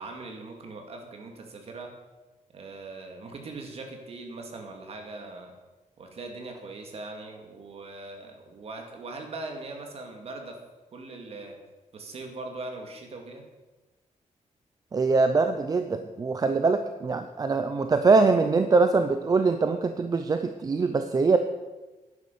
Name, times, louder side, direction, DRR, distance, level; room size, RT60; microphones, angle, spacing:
voice 1, 0.0-1.9 2.5-5.5 6.0-10.6 10.9-11.6 11.9-13.4, right 3 dB, 50° right, 3 dB, 2.3 m, -40 dB
voice 2, 14.9-21.4, right 4 dB, 30° right, 8 dB, 0.6 m, -23 dB
11.0 x 9.9 x 6.9 m, 1.2 s
wide cardioid pair, 175°, 14 cm